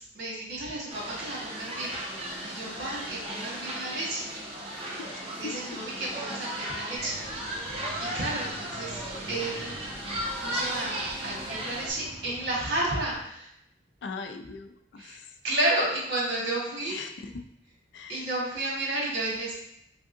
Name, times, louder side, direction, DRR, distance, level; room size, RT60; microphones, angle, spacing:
voice 1, 0.0-4.3 5.3-7.1 7.6-9.0 9.3-9.7 10.4-13.5 15.0-15.2 15.4-17.0 18.1-19.5, right 1 dB, 65° right, -5 dB, 1.5 m, -32 dB
sound 1, 0.9-11.9, right 1 dB, 35° right, 0.6 m, -36 dB
sound 2, 6.9-13.2, right 1 dB, 85° right, 1.3 m, -46 dB
voice 2, 14.0-15.4 16.9-17.3 17.9-18.2, left 4 dB, 75° left, 6 dB, 0.4 m, -40 dB
3.7 x 3.5 x 2.6 m, 0.76 s
head